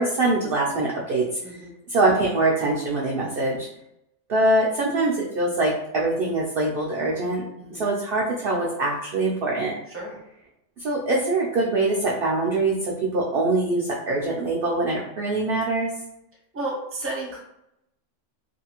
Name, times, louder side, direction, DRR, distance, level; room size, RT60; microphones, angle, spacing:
voice 1, 0.0-1.2 1.9-3.7 4.3-7.4 7.7-9.7 10.8-15.9, right 2 dB, 65° right, -3 dB, 0.6 m, -23 dB
voice 2, 16.5-17.4, right 2 dB, 15° right, -3 dB, 0.6 m, -32 dB
2.6 x 2.4 x 2.9 m, 0.81 s
omnidirectional pair, 1.4 m